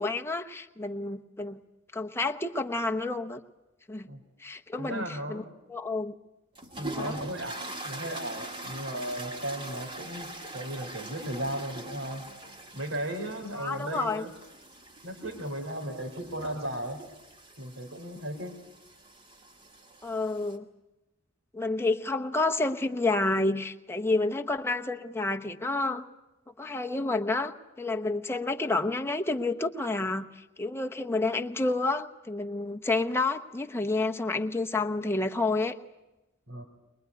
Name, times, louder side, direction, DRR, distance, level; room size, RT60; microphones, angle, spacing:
voice 1, 0.0-1.6 1.9-3.4 3.9-4.1 4.4-5.4 5.7-6.1 6.9-7.2 13.6-14.2 20.0-20.7 21.5-26.0 26.6-35.8, left 2 dB, 10° left, 4 dB, 0.9 m, -29 dB
voice 2, 4.8-5.5 6.8-12.3 12.7-14.3 15.0-17.0 17.6-18.6 36.5-36.7, right 1 dB, 85° right, 4 dB, 3.4 m, -36 dB
sound 1, 6.6-20.6, right 1 dB, 25° right, 2.4 m, -43 dB
23.0 x 21.5 x 9.5 m, 1.0 s
head